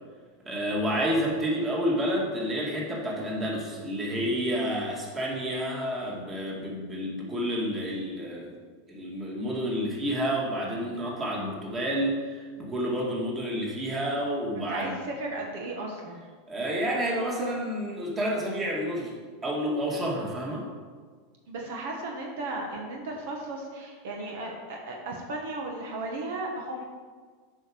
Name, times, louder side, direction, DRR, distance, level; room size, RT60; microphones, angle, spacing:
voice 1, 0.5-8.5 8.9-14.9 16.5-19.1 19.4-20.7, equal, 20° right, -3 dB, 2.2 m, -29 dB
voice 2, 14.6-16.2 21.5-26.8, right 2 dB, 70° right, 0 dB, 1.4 m, -35 dB
7.4 x 5.0 x 6.3 m, 1.5 s
supercardioid pair, 125°, 0 cm